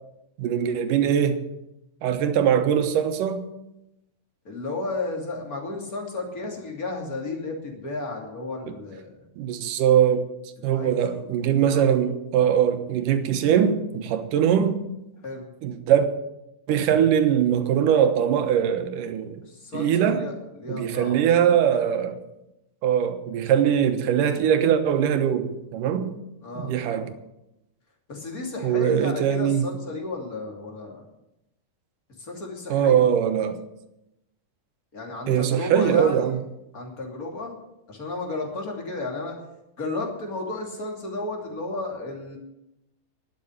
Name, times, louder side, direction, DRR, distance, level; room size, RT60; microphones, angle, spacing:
voice 1, 0.4-1.4 2.0-3.4 8.7-8.8 9.4-10.2 10.6-14.8 15.6-16.1 16.7-19.4 19.7-20.3 20.7-22.2 22.8-26.1 26.6-27.1 28.6-29.7 32.7-33.6 35.3-36.4, right 9 dB, 85° right, 2.7 m, -21 dB
voice 2, 4.4-9.3 10.6-11.4 11.7-11.9 15.2-15.4 19.5-21.2 26.4-27.2 28.1-31.1 32.2-33.1 34.9-36.4 36.7-37.6 37.9-39.4 39.8-42.4, left 2 dB, 30° left, 3.0 m, -33 dB
12.0 x 8.4 x 9.8 m
omnidirectional pair, 3.7 m